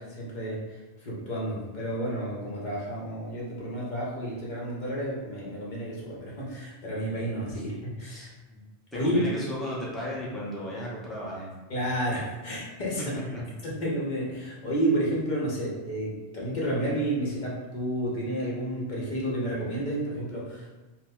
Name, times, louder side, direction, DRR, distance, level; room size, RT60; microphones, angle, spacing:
voice 1, 0.0-8.3 8.9-9.2 11.7-13.2 13.6-20.7, right 1 dB, 45° left, -5 dB, 0.8 m, -31 dB
voice 2, 8.1-8.6 8.9-11.5 13.0-13.4, equal, ahead, -7 dB, 0.6 m, -35 dB
2.9 x 2.0 x 3.5 m, 1.2 s
omnidirectional pair, 1.1 m